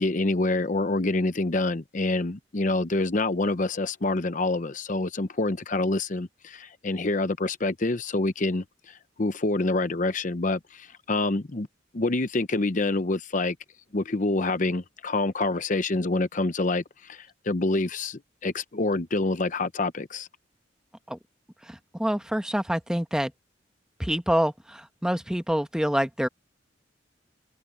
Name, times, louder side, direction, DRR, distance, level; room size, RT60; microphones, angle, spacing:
voice 1, 0.0-11.7 11.9-13.6 13.9-20.3, left 2 dB, 45° left, 0.8 m, -27 dB
voice 2, 21.7-23.3 24.0-26.3, equal, 5° right, 1.1 m, -26 dB
head